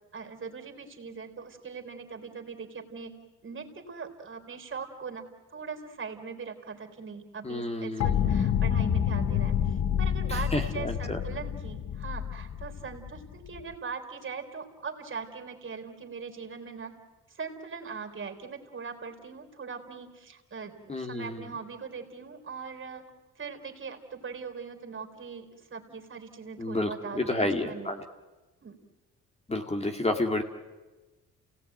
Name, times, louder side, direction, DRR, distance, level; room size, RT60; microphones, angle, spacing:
voice 1, 0.1-17.0 17.3-23.0 23.4-27.9 28.6-28.8, right 5 dB, 40° right, 4 dB, 3.8 m, -41 dB
voice 2, 7.4-8.2 10.3-11.2 20.9-21.4 26.6-28.0 29.5-30.4, left 2 dB, 20° left, 5 dB, 2.1 m, -30 dB
sound 1, 8.0-13.7, left 9 dB, 55° left, 1.1 m, -28 dB
29.0 x 18.0 x 9.2 m, 1.2 s
cardioid pair, 90°, 30 cm